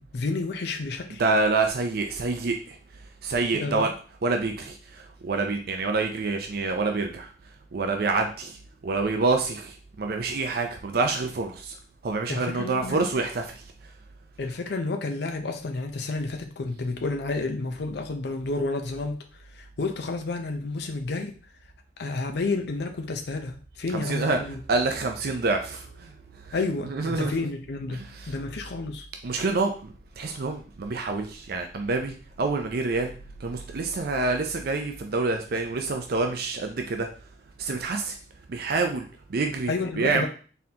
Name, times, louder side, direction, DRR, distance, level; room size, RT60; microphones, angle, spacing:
voice 1, 0.0-1.2 3.5-3.8 12.3-13.1 14.4-19.2 19.5-21.3 22.0-24.6 26.5-29.1 39.7-40.3, left 3 dB, 65° left, 0.5 m, -30 dB
voice 2, 1.1-2.8 3.2-3.9 4.2-7.3 7.7-8.6 8.8-11.8 12.0-13.6 23.9-24.4 24.7-26.6 26.8-27.3 27.9-28.3 29.2-33.1 33.4-37.1 37.6-38.2 38.5-40.3, right 3 dB, 60° right, 0.5 m, -27 dB
4.1 x 3.8 x 2.8 m
head